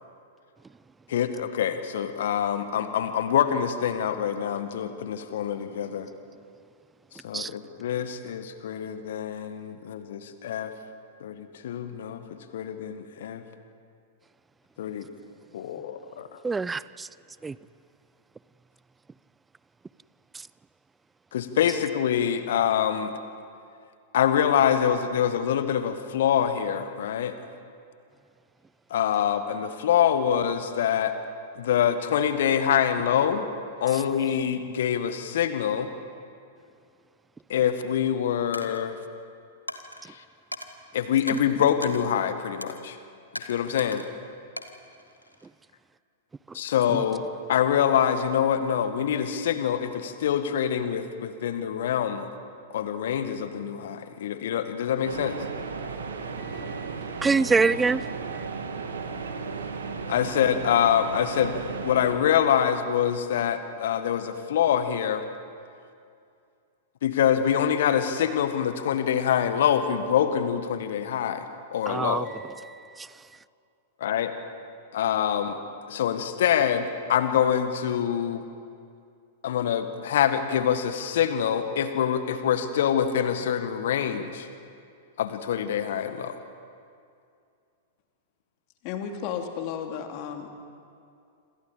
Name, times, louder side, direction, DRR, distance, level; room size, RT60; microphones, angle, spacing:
voice 1, 1.1-6.1 7.2-10.7 11.2-13.4 14.8-15.1 15.5-16.3 21.3-23.1 24.1-27.4 28.9-31.1 31.6-33.5 33.8-35.9 37.5-38.9 40.9-43.0 43.4-44.0 46.5-47.2 47.5-52.3 52.7-55.4 60.1-61.5 61.8-65.2 67.0-72.3 74.0-74.3 74.9-75.6 75.9-78.5 79.4-84.5 85.2-86.4, left 9 dB, 60° left, 1.7 m, -25 dB
voice 2, 16.4-17.1 17.4-17.6 46.9-47.0 56.5-56.8 57.2-58.0 71.9-72.3 72.6-73.1, right 4 dB, 10° right, 0.5 m, -25 dB
Coin (dropping), 38.5-38.8 39.7-40.0 40.5-40.7 41.3-41.4 41.8-42.0 42.6-42.8 43.4-44.1 44.6-45.5, left 1 dB, 90° left, 1.3 m, -38 dB
sound 1, 55.0-62.2, right 5 dB, 70° right, 2.2 m, -35 dB
voice 3, 88.8-90.5, left 8 dB, 40° left, 2.7 m, -33 dB
27.5 x 26.5 x 5.1 m
figure-of-eight pair, 100°, 0 cm